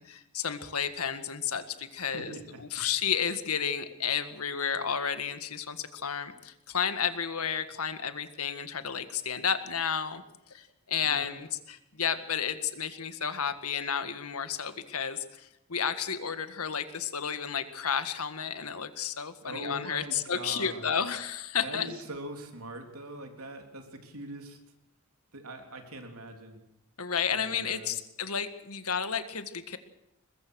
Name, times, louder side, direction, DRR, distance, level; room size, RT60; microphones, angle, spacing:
voice 1, 0.0-10.2 10.5-21.9 27.0-29.8, left 7 dB, 90° left, 10 dB, 1.8 m, -32 dB
voice 2, 2.1-2.6 11.0-11.4 19.4-20.9 21.6-24.6 25.3-26.6 27.3-28.0, right 1 dB, 85° right, 4 dB, 3.5 m, -42 dB
22.0 x 21.0 x 6.4 m, 0.84 s
head